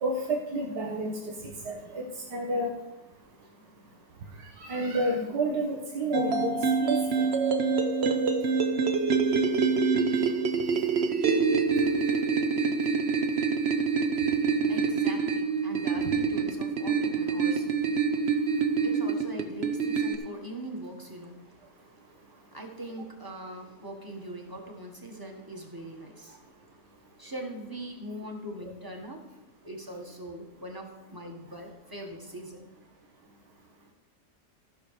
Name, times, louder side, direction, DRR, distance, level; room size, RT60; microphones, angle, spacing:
voice 1, 0.0-1.2 1.7-2.0 2.3-2.7 4.6-6.5 6.8-7.3, right 1 dB, 85° right, -2 dB, 2.1 m, -30 dB
sound 1, 6.1-20.2, right 5 dB, 50° right, 1.0 m, -26 dB
voice 2, 14.4-26.5 27.2-29.3 29.6-32.7, right 1 dB, 15° right, 1 dB, 1.6 m, -42 dB
14.5 x 6.5 x 5.0 m, 1.1 s
omnidirectional pair, 1.7 m